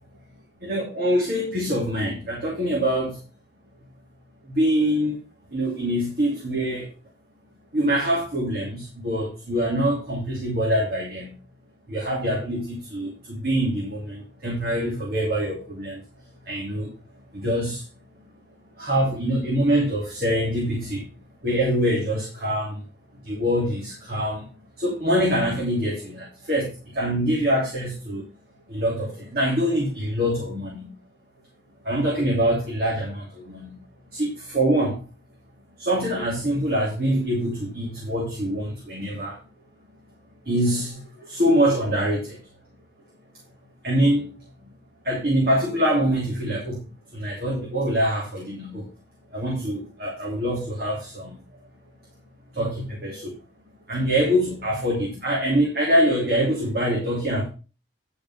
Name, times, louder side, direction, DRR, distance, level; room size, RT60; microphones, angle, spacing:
voice 1, 0.6-3.1 4.5-5.2 5.5-6.9 7.7-11.3 11.9-16.0 16.5-16.9 17.3-17.8 18.8-21.0 21.4-22.8 23.3-24.4 24.8-26.7 26.9-28.2 28.7-30.9 31.8-33.7 34.1-35.0 35.8-39.4 40.5-41.0 41.3-42.4 43.8-44.3 45.0-46.8 47.1-48.8 49.3-51.3 52.6-53.3 53.9-57.5, equal, 50° right, -2 dB, 2.9 m, -24 dB
10.5 x 5.4 x 5.5 m, 0.33 s
head